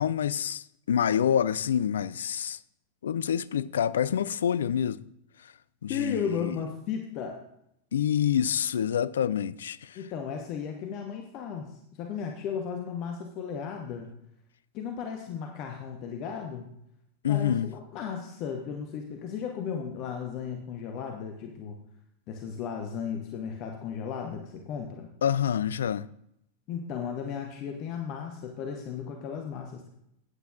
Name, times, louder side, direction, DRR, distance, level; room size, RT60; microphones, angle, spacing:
voice 1, 0.0-2.6 3.0-5.0 5.4-5.5 5.8-6.6 7.9-10.0 17.2-17.7 25.2-26.1, left 9 dB, 65° left, 0.3 m, -27 dB
voice 2, 5.9-7.4 9.9-14.1 14.7-16.7 17.3-21.8 22.3-25.1 26.7-29.9, left 7 dB, 40° left, 1.0 m, -35 dB
14.5 x 9.3 x 2.5 m
figure-of-eight pair, 90°, 0 cm